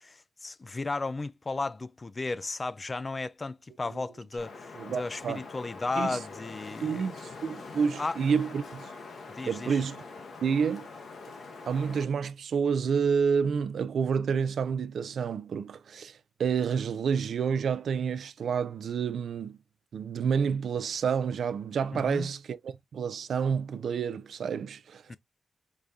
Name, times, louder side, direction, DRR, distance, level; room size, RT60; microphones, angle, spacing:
voice 1, 0.0-7.2 7.6-8.2 9.4-9.8 21.9-22.3 25.1-25.2, left 3 dB, 35° left, 0.4 m, -35 dB
Wind, 4.4-12.0, left 4 dB, 70° left, 1.2 m, -44 dB
voice 2, 4.8-5.4 6.0-6.2 6.8-8.9 9.5-10.0 10.4-10.9 11.7-19.6 19.9-25.0, right 6 dB, 70° right, 0.4 m, -29 dB
4.8 x 2.3 x 2.6 m
supercardioid pair, 45°, 0 cm